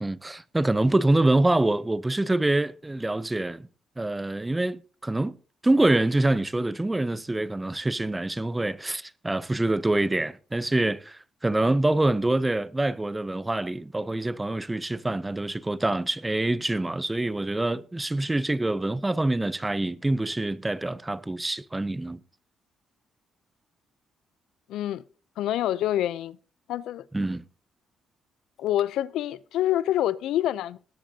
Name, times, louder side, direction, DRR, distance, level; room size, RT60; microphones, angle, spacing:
voice 1, 0.0-3.7 4.0-5.4 5.6-22.2 27.1-27.4, right 2 dB, 15° right, 0.6 m, -25 dB
voice 2, 24.7-25.0 25.4-26.4 26.7-27.0 28.6-30.8, left 12 dB, 85° left, 0.5 m, -26 dB
19.5 x 10.0 x 2.8 m
cardioid pair, 90°, 0 cm